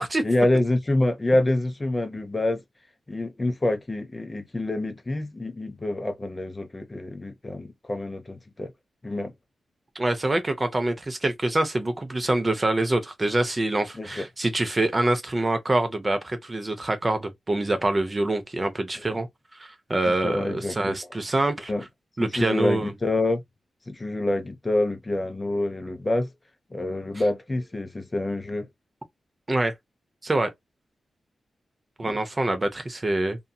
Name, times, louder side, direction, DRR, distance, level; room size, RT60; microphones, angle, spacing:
voice 1, 0.2-2.6 3.1-8.7 9.0-9.3 14.0-14.2 19.1-19.2 20.1-21.0 21.7-21.8 22.2-23.4 23.9-26.3 26.7-28.7 32.0-32.2, left 2 dB, 20° left, 0.6 m, -27 dB
voice 2, 10.0-19.3 19.6-21.7 22.2-22.9 29.5-29.7 30.2-30.5 32.0-33.4, right 2 dB, 25° right, 0.5 m, -25 dB
2.6 x 2.6 x 2.2 m
wide cardioid pair, 140°, 0 cm